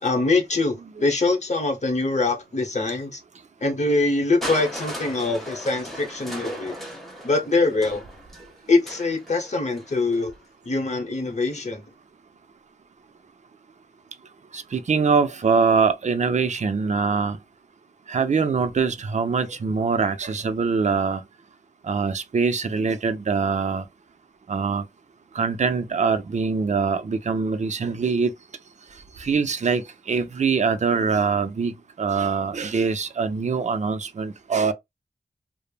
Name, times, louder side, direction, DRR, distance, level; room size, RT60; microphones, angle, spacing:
voice 1, 0.0-3.2 3.6-6.7 7.2-8.0 8.7-10.3 10.6-11.8, left 3 dB, 45° left, 0.9 m, -23 dB
Crushing, 4.4-10.3 11.3-11.4, equal, ahead, 1.0 m, -37 dB
voice 2, 14.5-17.4 18.1-21.2 21.8-23.9 24.5-24.9 25.3-28.3 29.2-31.7 32.0-34.7, right 5 dB, 45° right, 0.4 m, -23 dB
3.1 x 2.0 x 2.3 m
wide cardioid pair, 75°, 17 cm